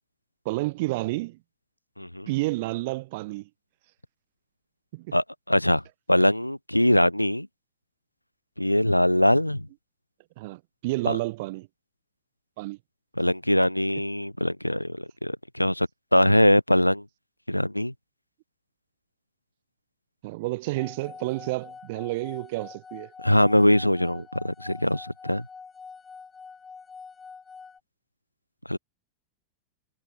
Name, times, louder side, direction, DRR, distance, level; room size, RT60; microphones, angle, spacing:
voice 1, 0.4-1.4 2.3-3.5 4.9-5.1 10.4-11.7 12.6-12.8 20.2-23.1, right 21 dB, 50° right, 0.8 m, -30 dB
voice 2, 2.0-2.3 5.1-5.8 6.1-7.5 8.6-9.7 11.1-11.2 13.2-17.0 17.5-17.9 23.2-25.4 28.7-28.8, left 1 dB, 90° left, 0.8 m, -22 dB
sound 1, 20.8-27.8, left 5 dB, 15° left, 1.7 m, -45 dB
figure-of-eight pair, 90°, 0 cm